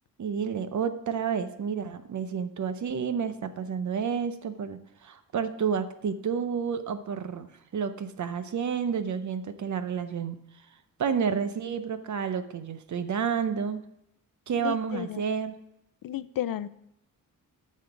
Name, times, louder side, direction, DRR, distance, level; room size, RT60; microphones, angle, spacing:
voice 1, 0.2-10.4 11.0-13.8 14.5-15.5, right 6 dB, 55° right, 11 dB, 0.7 m, -30 dB
voice 2, 14.6-15.2 16.0-16.7, left 12 dB, 75° left, 14 dB, 0.5 m, -33 dB
10.5 x 6.5 x 5.0 m, 0.77 s
wide cardioid pair, 175°, 35 cm